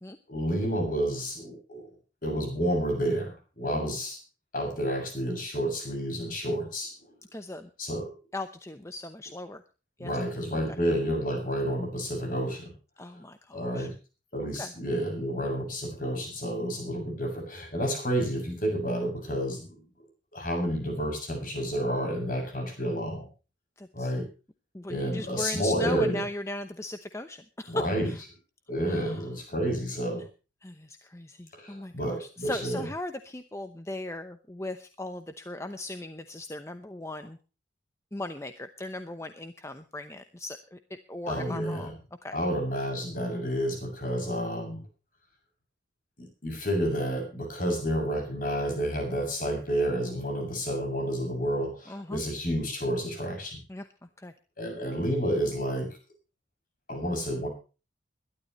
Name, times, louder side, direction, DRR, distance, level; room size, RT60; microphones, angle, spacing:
voice 1, 0.3-1.8 2.2-4.2 4.5-6.9 7.8-8.1 10.0-12.7 13.5-13.9 14.3-19.6 20.3-23.3 23.9-24.3 24.9-26.2 27.7-28.1 28.7-30.2 31.5-32.9 41.3-41.9 42.3-44.8 46.2-53.6 54.6-55.9 56.9-57.5, equal, 45° left, 3 dB, 7.2 m, -30 dB
voice 2, 7.3-7.7 8.3-9.6 10.0-10.1 13.0-13.9 14.4-14.7 23.8-24.1 24.7-28.2 28.9-29.2 30.6-37.4 38.1-41.9 42.2-42.4 51.9-52.2 53.7-53.9 54.2-54.3, left 1 dB, 15° left, 8 dB, 0.8 m, -38 dB
22.5 x 12.0 x 3.1 m, 0.34 s
head